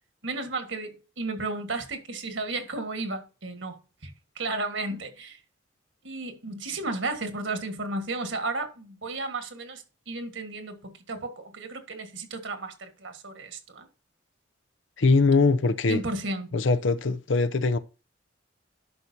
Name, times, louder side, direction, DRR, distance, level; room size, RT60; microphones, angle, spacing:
voice 1, 0.2-3.8 4.0-5.4 6.0-13.9 15.9-16.5, right 2 dB, 75° right, 1.7 m, -33 dB
voice 2, 15.0-16.0 16.5-17.8, left 3 dB, 75° left, 0.6 m, -22 dB
11.5 x 5.9 x 2.8 m
head